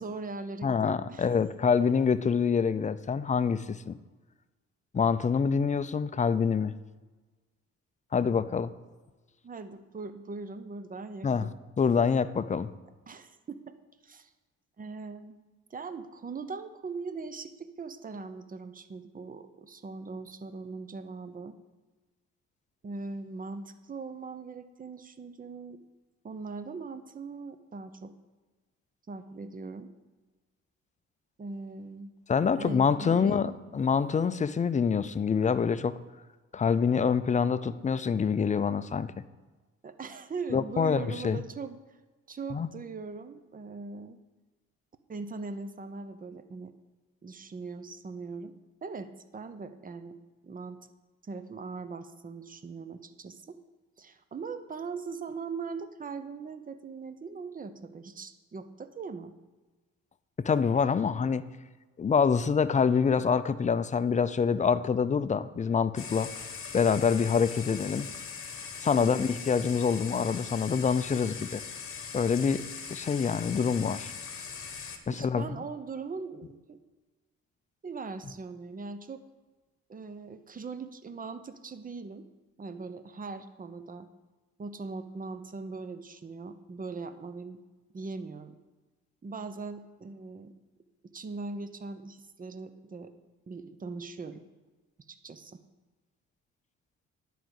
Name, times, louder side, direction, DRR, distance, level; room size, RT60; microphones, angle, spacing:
voice 1, 0.0-1.3 8.2-8.6 9.4-11.5 13.1-13.7 14.0-14.3 14.8-15.3 15.7-21.5 22.8-25.8 26.2-28.1 29.1-29.9 31.4-32.1 32.5-33.5 39.8-41.8 42.3-44.2 45.1-46.7 47.2-48.5 48.8-50.2 50.4-50.9 51.2-53.6 54.0-59.3 68.9-69.2 75.1-76.8 77.8-79.2 79.9-82.3 82.6-84.1 84.6-87.6 87.9-88.6 89.2-90.5 91.1-93.1 93.5-94.4 95.1-95.6, right 4 dB, 30° right, 11 dB, 0.8 m, -40 dB
voice 2, 0.6-4.0 4.9-6.7 8.1-8.7 11.2-11.5 11.8-12.7 32.3-36.0 36.5-39.1 40.5-41.4 42.5-42.7 60.4-61.5 62.0-66.3 66.7-68.1 68.8-71.6 72.1-72.6 72.9-74.1 75.1-75.5, left 6 dB, 25° left, 13 dB, 0.5 m, -26 dB
sound 1, 66.0-75.0, left 6 dB, 45° left, 1.3 m, -41 dB
10.5 x 5.0 x 7.8 m, 1.3 s
cardioid pair, 90°, 30 cm